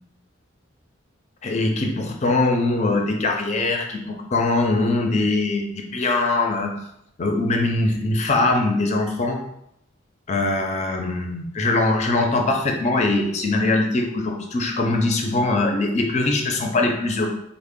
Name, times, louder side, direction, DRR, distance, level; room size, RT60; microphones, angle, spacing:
voice 1, 1.4-6.7 7.2-9.4 10.3-17.3, left 2 dB, 35° left, 2 dB, 0.4 m, -22 dB
3.5 x 2.0 x 3.6 m, 0.76 s
head